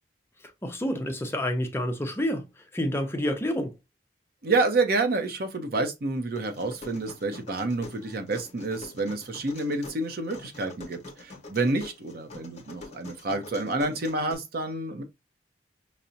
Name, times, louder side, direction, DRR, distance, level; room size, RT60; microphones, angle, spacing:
voice 1, 0.4-3.7, equal, 15° left, 0.5 m, -29 dB
voice 2, 4.4-15.0, right 3 dB, 55° right, 0.6 m, -28 dB
sound 1, 6.4-14.3, left 2 dB, 40° left, 0.9 m, -45 dB
5.6 x 2.0 x 2.6 m
head